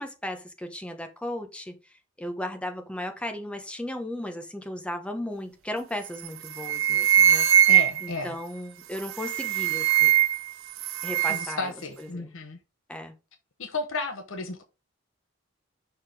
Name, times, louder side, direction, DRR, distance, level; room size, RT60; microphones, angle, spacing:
voice 1, 0.0-7.7 8.0-10.1 11.0-11.7 12.0-12.3 12.9-13.1, left 1 dB, 5° left, 1.1 m, -36 dB
sound 1, 6.0-6.3 6.6-8.2 9.0-10.5 10.8-11.6, right 10 dB, 80° right, 0.6 m, -21 dB
voice 2, 7.7-8.3 11.3-12.6 13.6-14.6, left 3 dB, 70° left, 1.1 m, -33 dB
5.9 x 4.7 x 4.9 m
head